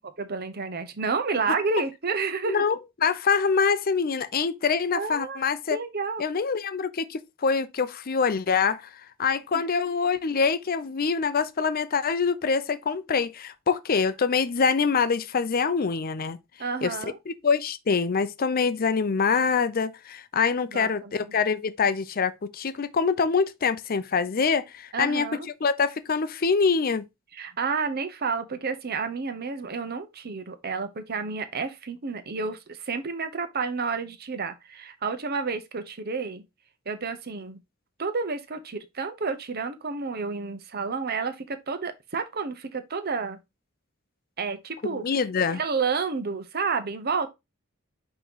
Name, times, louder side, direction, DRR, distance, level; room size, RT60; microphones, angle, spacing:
voice 1, 0.2-2.6 4.9-6.2 9.5-9.9 16.6-17.2 20.7-21.3 24.9-25.5 27.3-36.4 36.9-37.6 38.0-43.4 44.4-45.0 45.5-47.3, right 4 dB, 50° right, 0.9 m, -30 dB
voice 2, 2.4-5.8 6.2-8.9 9.2-16.4 16.8-25.3 25.6-27.0 44.8-45.6, left 5 dB, 45° left, 0.5 m, -25 dB
6.1 x 3.1 x 5.5 m
head